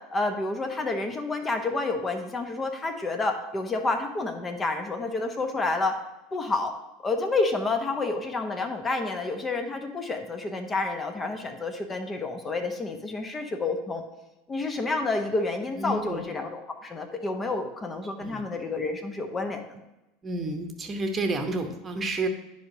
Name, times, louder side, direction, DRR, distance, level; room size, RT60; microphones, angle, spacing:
voice 1, 0.0-6.0 6.3-6.7 7.0-14.0 14.5-19.8, left 3 dB, 20° left, 5 dB, 0.9 m, -29 dB
voice 2, 15.8-16.3 18.2-18.4 20.2-22.3, right 2 dB, 25° right, 6 dB, 1.1 m, -30 dB
10.5 x 4.9 x 2.8 m, 0.96 s
figure-of-eight pair, 80°, 0 cm